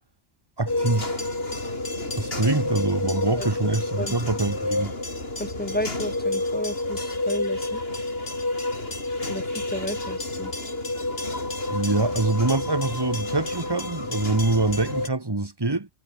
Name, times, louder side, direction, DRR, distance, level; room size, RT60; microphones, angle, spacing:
voice 1, 0.6-1.2 2.1-4.9 11.7-15.9, right 2 dB, 20° right, 1.7 m, -25 dB
sound 1, 0.7-15.1, left 2 dB, 55° left, 4.8 m, -29 dB
voice 2, 5.4-7.8 9.3-10.5, left 1 dB, 10° left, 1.7 m, -32 dB
omnidirectional pair, 1.2 m